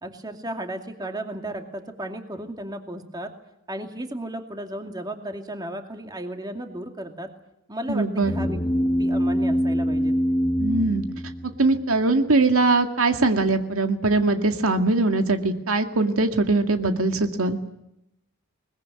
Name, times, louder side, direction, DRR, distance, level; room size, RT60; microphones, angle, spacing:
voice 1, 0.0-3.3 3.7-7.3 7.7-8.6 8.9-10.1, right 1 dB, 20° right, 4 dB, 2.3 m, -34 dB
voice 2, 7.9-8.3 10.6-11.0 11.6-17.6, right 3 dB, 85° right, 6 dB, 2.0 m, -21 dB
sound 1, 8.2-11.9, equal, 25° left, 1.2 m, -24 dB
22.0 x 21.0 x 9.5 m, 0.83 s
head